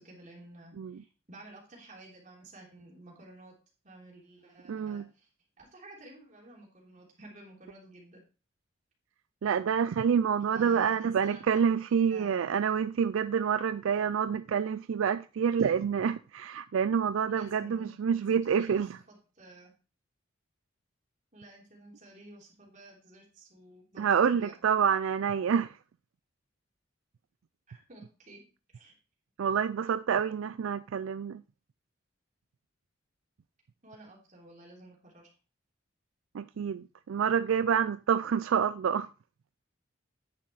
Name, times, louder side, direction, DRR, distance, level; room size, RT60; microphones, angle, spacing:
voice 1, 0.0-3.5 3.8-5.3 5.6-8.2 10.5-11.8 12.1-12.4 17.3-19.7 21.3-24.5 27.7-28.4 28.7-28.9 33.8-35.3, right 2 dB, 40° right, 3.4 m, -52 dB
voice 2, 4.7-5.1 9.4-19.0 24.0-25.8 29.4-31.4 36.3-39.1, right 7 dB, 80° right, 0.4 m, -27 dB
9.7 x 6.4 x 4.1 m
head